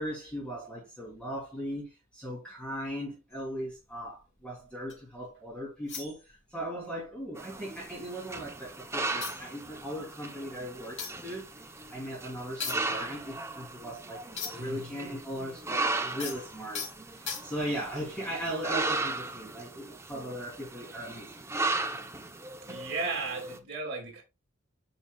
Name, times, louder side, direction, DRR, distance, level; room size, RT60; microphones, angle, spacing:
voice 1, 0.0-16.8 17.1-22.1, equal, 5° left, 3.1 m, -38 dB
sound 1, 3.3-5.2 5.9-6.7 7.0-7.2 7.6-8.5 8.8-8.9 9.2-14.8 15.1-17.8 18.4-18.7, left 6 dB, 60° left, 3.1 m, -42 dB
sound 2, 7.4-23.6, right 3 dB, 15° right, 0.8 m, -36 dB
voice 2, 14.5-14.9 22.7-24.2, right 3 dB, 55° right, 2.2 m, -35 dB
10.0 x 5.3 x 2.3 m
head